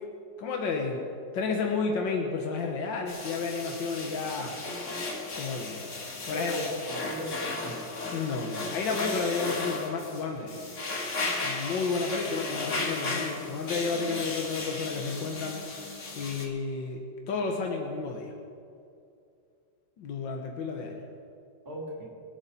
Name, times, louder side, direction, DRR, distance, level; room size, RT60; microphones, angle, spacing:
voice 1, 0.4-1.1 1.3-4.6 5.3-5.9 6.3-6.7 8.1-10.6 11.4-15.6 16.1-17.0 17.3-18.3 20.0-21.0, left 4 dB, 90° left, 2 dB, 1.9 m, -31 dB
sound 1, 3.1-16.5, left 3 dB, 40° left, 1.8 m, -35 dB
voice 2, 6.3-7.8 21.7-22.0, equal, 50° right, -10 dB, 3.6 m, -37 dB
26.0 x 8.8 x 4.3 m, 2.5 s
omnidirectional pair, 2.0 m